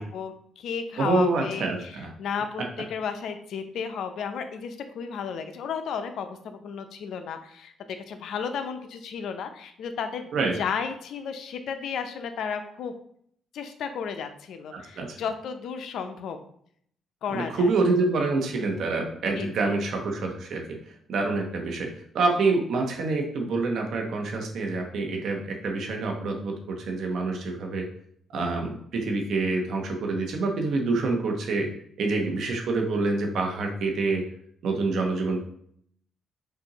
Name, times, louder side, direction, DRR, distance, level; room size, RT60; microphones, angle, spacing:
voice 1, 0.0-10.3 10.6-12.9 13.5-16.4 17.2-17.7 19.4-19.8, left 6 dB, 75° left, 7 dB, 0.5 m, -33 dB
voice 2, 1.0-2.1 10.3-10.6 14.7-15.2 17.3-20.6 21.1-21.9 22.1-27.9 28.3-31.7 32.0-34.2 34.6-35.4, right 3 dB, 70° right, 2 dB, 1.0 m, -26 dB
6.7 x 2.5 x 3.0 m, 0.65 s
cardioid pair, 90°, 0 cm